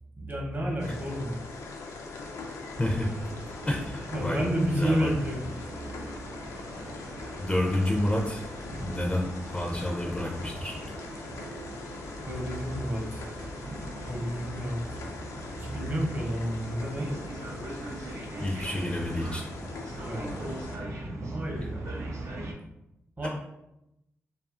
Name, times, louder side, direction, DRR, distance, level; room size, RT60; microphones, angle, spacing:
voice 1, 0.2-1.3 4.1-5.4 12.3-13.3 14.0-15.0 15.6-17.1 20.0-22.1 23.2-23.3, equal, 35° right, -1 dB, 0.8 m, -31 dB
sound 1, 0.8-20.8, left 3 dB, 85° left, 0.4 m, -41 dB
sound 2, 2.7-22.5, right 2 dB, 70° right, 0.5 m, -41 dB
voice 2, 2.8-3.1 3.7-5.1 7.4-8.5 8.8-10.8 18.4-19.4 23.2-23.3, left 1 dB, 20° left, -1 dB, 0.4 m, -29 dB
2.7 x 2.4 x 2.4 m, 0.88 s
cardioid pair, 55°, 5 cm